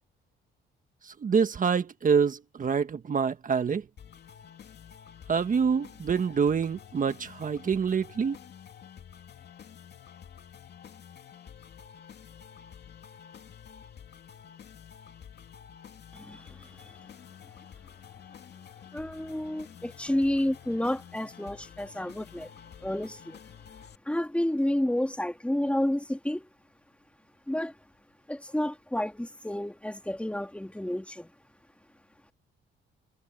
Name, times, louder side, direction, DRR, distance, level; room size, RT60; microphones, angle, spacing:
voice 1, 1.0-3.8 5.3-8.4, right 6 dB, 40° right, 1.5 m, -26 dB
sound 1, 4.0-23.9, left 8 dB, 60° left, 2.5 m, -49 dB
voice 2, 16.1-17.0 18.9-22.5 22.8-23.4 24.1-26.5 27.5-27.7 28.3-31.3, left 1 dB, 5° left, 2.7 m, -30 dB
cardioid pair, 90°, 20 cm